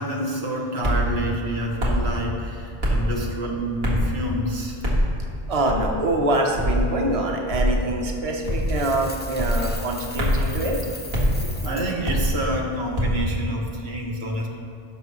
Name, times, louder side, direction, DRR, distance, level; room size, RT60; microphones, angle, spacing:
voice 1, 0.0-4.8 11.6-14.5, right 1 dB, 85° right, -1 dB, 1.5 m, -28 dB
sound 1, 0.8-1.1 1.8-2.1 2.8-3.1 3.8-4.1 4.8-5.1 5.7-6.0 6.6-6.8 7.5-7.8 8.5-8.8 9.4-9.6 10.2-10.5 11.1-11.3 12.0-12.4 13.0-13.2, equal, 70° right, 2.2 m, -22 dB
voice 2, 5.5-10.8, right 1 dB, 35° right, 1 dB, 1.0 m, -24 dB
Coin (dropping), 8.4-11.9, left 2 dB, 15° left, 0.5 m, -39 dB
16.5 x 6.0 x 3.1 m, 2.7 s
omnidirectional pair, 1.1 m